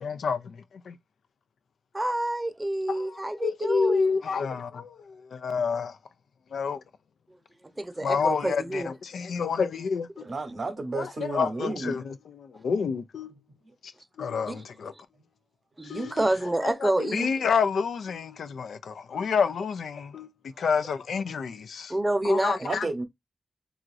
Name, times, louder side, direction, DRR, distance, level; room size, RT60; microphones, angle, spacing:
voice 1, 0.0-1.0 3.0-6.0 6.5-6.8 8.0-10.2 11.0-13.3 13.8-13.9 14.2-14.9 15.9-16.1 16.6-20.3 20.6-21.9 22.2-22.9, left 5 dB, 90° left, 0.3 m, -29 dB
voice 2, 1.9-4.2 7.8-8.9 14.5-14.6 15.8-17.3 21.9-22.7, right 1 dB, 25° right, 0.6 m, -28 dB
voice 3, 10.2-12.0 22.6-23.0, right 3 dB, 65° right, 0.8 m, -32 dB
3.0 x 2.4 x 2.4 m
cardioid pair, 45°, 0 cm